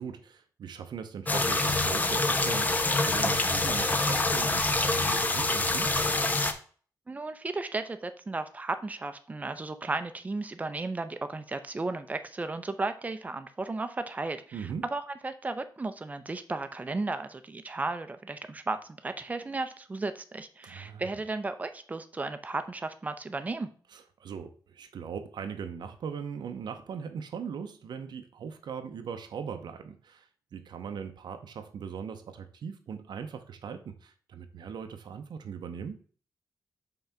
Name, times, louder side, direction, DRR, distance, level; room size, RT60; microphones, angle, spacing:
voice 1, 0.0-5.9 14.5-14.8 20.6-21.0 23.9-36.0, right 7 dB, 85° right, 7 dB, 0.7 m, -39 dB
sound 1, 1.3-6.5, left 2 dB, 25° left, 0.7 m, -26 dB
voice 2, 7.1-23.7, right 3 dB, 20° right, 9 dB, 0.6 m, -34 dB
5.7 x 3.9 x 5.7 m, 0.43 s
wide cardioid pair, 155°, 7 cm